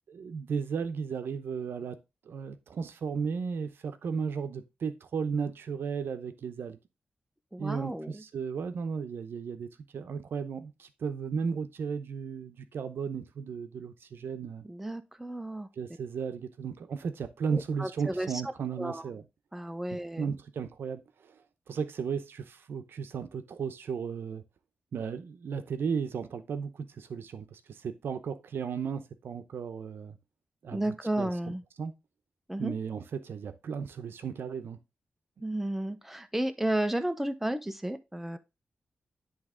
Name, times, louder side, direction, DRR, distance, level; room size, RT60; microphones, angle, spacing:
voice 1, 0.1-2.0 2.2-6.8 7.6-14.6 15.8-19.2 20.2-21.4 21.7-24.4 24.9-30.2 30.6-31.3 31.8-31.9 32.6-34.8, right 6 dB, 85° right, 0.8 m, -35 dB
voice 2, 7.5-8.2 14.6-15.7 17.5-18.3 18.8-19.0 19.5-20.3 30.7-31.6 32.5-32.7 35.4-38.4, right 1 dB, 5° right, 0.7 m, -33 dB
10.5 x 3.5 x 3.7 m
wide cardioid pair, 90°, 4 cm